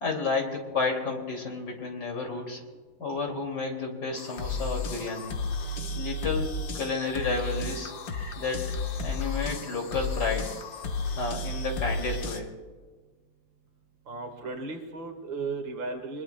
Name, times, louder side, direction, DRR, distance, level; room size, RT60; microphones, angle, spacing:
voice 1, 0.0-2.6 3.0-5.3 5.9-7.9 8.3-8.7 9.0-10.5 11.2-12.5, left 4 dB, 60° left, 1 dB, 3.2 m, -31 dB
sound 1, 4.2-12.4, left 3 dB, 75° left, 2.1 m, -33 dB
voice 2, 14.1-16.2, right 3 dB, 80° right, 3 dB, 2.6 m, -35 dB
24.5 x 21.0 x 2.2 m, 1.4 s
omnidirectional pair, 2.0 m